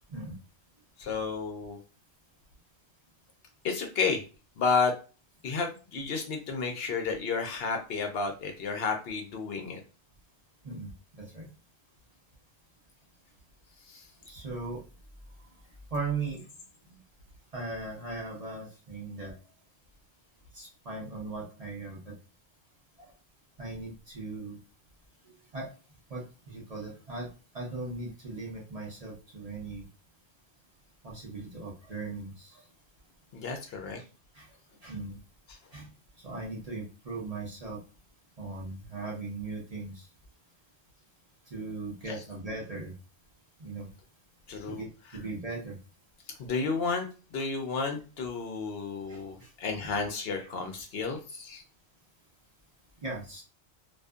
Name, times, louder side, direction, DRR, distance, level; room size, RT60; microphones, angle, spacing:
voice 1, 1.0-1.8 3.6-4.2 4.6-5.0 5.4-9.8 13.9-14.1 33.3-34.0 42.1-42.2 44.5-44.8 46.4-51.6, left 4 dB, 65° left, 4 dB, 0.8 m, -31 dB
voice 2, 10.6-11.5 14.2-14.8 15.9-16.5 16.8-17.0 17.5-19.4 20.5-22.2 23.0-23.1 23.6-24.6 25.5-25.7 26.1-27.3 27.5-29.9 31.0-32.6 34.0-34.1 34.3-34.5 34.8-35.2 35.7-35.9 36.2-37.8 38.4-40.1 41.5-42.9 43.6-43.9 44.7-45.8 49.1-49.5 49.8-49.9 53.0-53.4, right 3 dB, 40° right, -4 dB, 0.7 m, -38 dB
2.6 x 2.4 x 2.3 m, 0.34 s
omnidirectional pair, 1.1 m